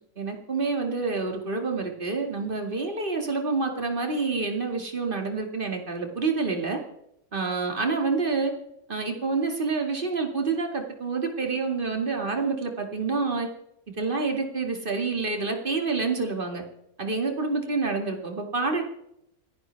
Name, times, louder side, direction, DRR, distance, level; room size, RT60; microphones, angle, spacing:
voice 1, 0.2-6.8 7.3-8.5 8.9-13.5 14.0-16.6 17.0-18.8, right 4 dB, 35° right, 3 dB, 2.4 m, -28 dB
28.0 x 10.5 x 3.5 m, 0.81 s
omnidirectional pair, 1.6 m